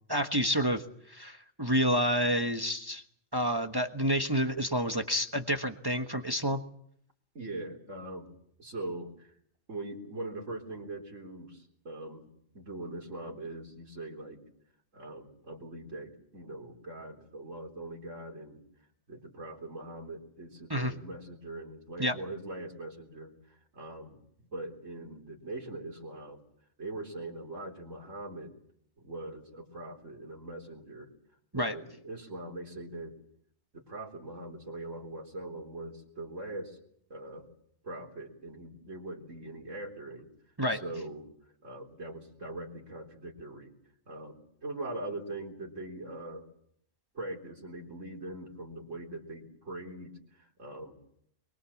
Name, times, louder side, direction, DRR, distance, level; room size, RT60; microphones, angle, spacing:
voice 1, 0.1-0.8 1.1-3.0 3.3-6.6 20.7-20.9 22.0-22.1 31.5-31.7 40.6-40.8, equal, 20° right, 6 dB, 1.3 m, -29 dB
voice 2, 7.3-8.3 8.6-9.3 9.7-12.3 12.5-14.4 14.9-18.6 19.1-26.4 26.8-28.5 29.0-31.1 31.5-33.1 33.7-36.8 37.1-37.4 37.8-40.3 40.7-41.3 41.6-43.7 44.1-46.5 47.1-50.9, right 2 dB, 80° right, -1 dB, 4.1 m, -42 dB
24.0 x 23.0 x 7.3 m, 0.69 s
omnidirectional pair, 1.3 m